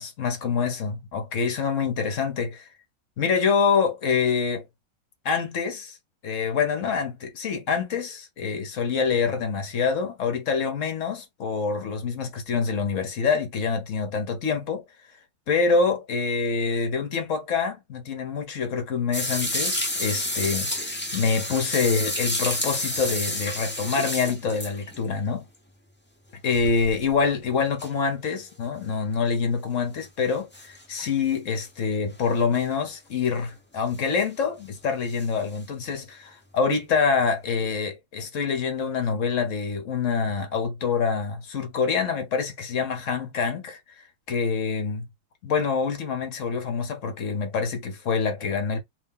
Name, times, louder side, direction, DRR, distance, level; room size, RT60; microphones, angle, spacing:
voice 1, 0.0-2.7 3.2-4.6 5.2-6.0 6.2-14.8 15.5-25.4 26.4-45.1 45.4-48.8, left 5 dB, 50° left, 1.0 m, -26 dB
sound 1, 19.1-25.1 26.5-27.2 27.8-27.9 29.1-29.2 30.5-31.1 31.6-31.7 32.5-32.6 33.9-34.2 35.1-35.3 37.6-37.7, left 1 dB, 15° left, 0.3 m, -30 dB
3.0 x 2.7 x 3.6 m
omnidirectional pair, 2.1 m